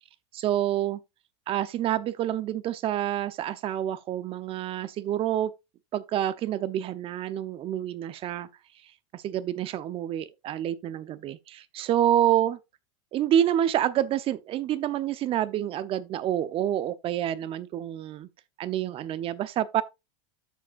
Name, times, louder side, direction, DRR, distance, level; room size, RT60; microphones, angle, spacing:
voice 1, 0.3-1.0 1.5-5.5 5.9-8.5 9.1-12.6 13.1-18.3 18.6-19.8, right 11 dB, 40° right, 0.8 m, -28 dB
13.5 x 5.1 x 2.5 m
supercardioid pair, 115°, 15 cm